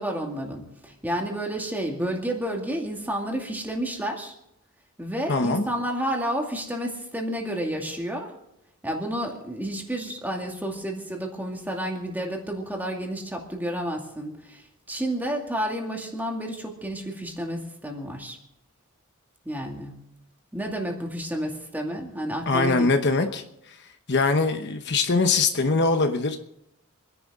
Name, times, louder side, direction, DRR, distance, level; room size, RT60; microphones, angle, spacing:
voice 1, 0.0-4.3 5.0-8.3 8.8-18.4 19.4-20.0 20.5-23.3, right 1 dB, 10° right, 1 dB, 2.4 m, -31 dB
voice 2, 5.3-5.6 22.5-23.4 24.1-26.4, left 3 dB, 50° left, 7 dB, 1.0 m, -22 dB
27.5 x 10.5 x 3.7 m, 0.81 s
head